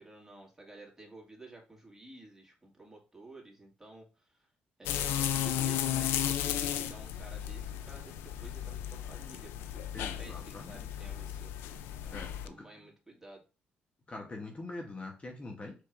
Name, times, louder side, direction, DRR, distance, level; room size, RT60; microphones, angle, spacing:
voice 1, 0.0-4.5 4.8-11.5 12.0-13.4, right 2 dB, 10° right, -1 dB, 2.1 m, -52 dB
sound 1, 4.9-12.5, left 11 dB, 85° left, 0.4 m, -34 dB
voice 2, 9.9-10.9 12.1-12.6 14.1-15.7, left 2 dB, 30° left, 2 dB, 0.9 m, -43 dB
4.5 x 4.4 x 2.5 m, 0.33 s
supercardioid pair, 65°, 4 cm